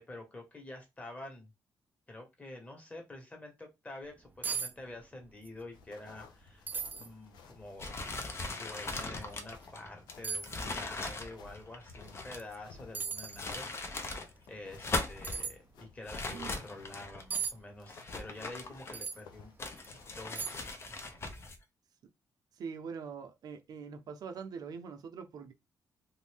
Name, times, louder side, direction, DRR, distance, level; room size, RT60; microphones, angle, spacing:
voice 1, 0.0-1.5 2.1-6.7 7.0-7.9 8.4-14.2 14.5-19.5 20.2-20.5 20.8-21.4, left 2 dB, 20° left, 1.3 m, -48 dB
sound 1, 4.1-4.2 4.4-4.7 5.0-5.6 5.9-6.0 6.7-7.1 7.7-7.8 9.3-9.5 10.2-10.5 12.4-12.5 12.9-13.4 15.2-15.5 17.3-17.5 18.9-19.2 19.8-19.9 20.3-20.8 21.0-21.2, right 6 dB, 25° right, 0.4 m, -37 dB
sound 2, 5.7-20.7, left 5 dB, 85° left, 0.6 m, -57 dB
sound 3, 7.8-12.6 13.2-14.3 14.7-15.4 16.1-17.3 17.9-19.2 19.6-21.6, left 2 dB, 35° left, 0.6 m, -39 dB
voice 2, 16.3-16.7 22.6-25.5, right 6 dB, 65° right, 0.6 m, -43 dB
2.6 x 2.6 x 3.4 m
cardioid pair, 95°, 7 cm